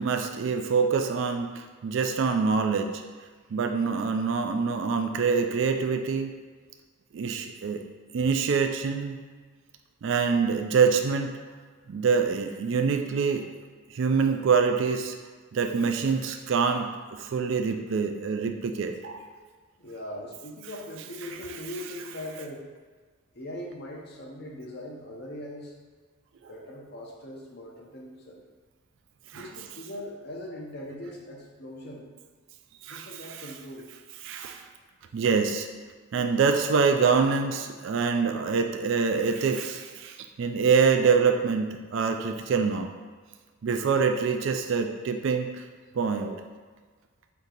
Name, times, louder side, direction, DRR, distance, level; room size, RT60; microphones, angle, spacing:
voice 1, 0.0-2.9 3.5-6.3 7.1-7.8 8.1-9.2 10.0-11.3 11.9-13.5 13.9-15.1 15.5-19.2 26.4-26.6 29.3-29.4 32.8-33.4 34.2-34.7 35.1-35.7 36.1-42.9 43.6-45.6 45.9-46.4, right 5 dB, 55° right, 5 dB, 0.3 m, -25 dB
voice 2, 19.8-22.6 23.3-25.7 26.5-28.4 29.3-32.1 32.9-33.9, left 1 dB, 50° left, -1 dB, 0.7 m, -40 dB
4.6 x 2.7 x 3.9 m, 1.5 s
head